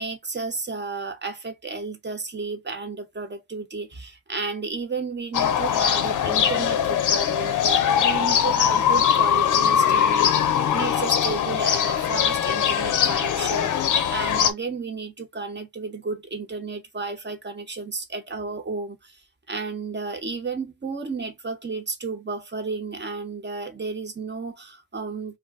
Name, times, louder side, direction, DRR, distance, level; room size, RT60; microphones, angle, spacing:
voice 1, 0.0-19.2 19.5-25.4, right 4 dB, 35° right, 0.9 m, -32 dB
sound 1, 5.3-14.5, left 8 dB, 85° left, 0.6 m, -21 dB
2.4 x 2.1 x 3.4 m
cardioid pair, 45°, 30 cm